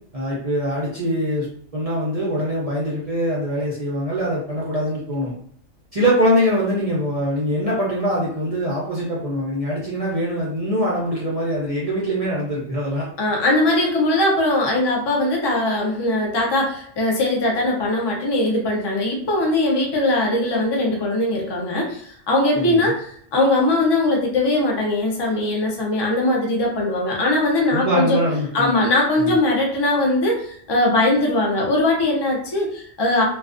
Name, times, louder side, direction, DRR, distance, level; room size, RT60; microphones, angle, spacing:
voice 1, 0.1-1.5 1.7-5.3 5.9-13.0 22.5-22.9 27.7-28.8 29.2-29.3, equal, 45° right, -6 dB, 0.4 m, -23 dB
voice 2, 13.2-28.2 28.5-33.2, left 2 dB, 40° left, -2 dB, 0.3 m, -20 dB
2.3 x 2.3 x 2.4 m, 0.63 s
omnidirectional pair, 1.3 m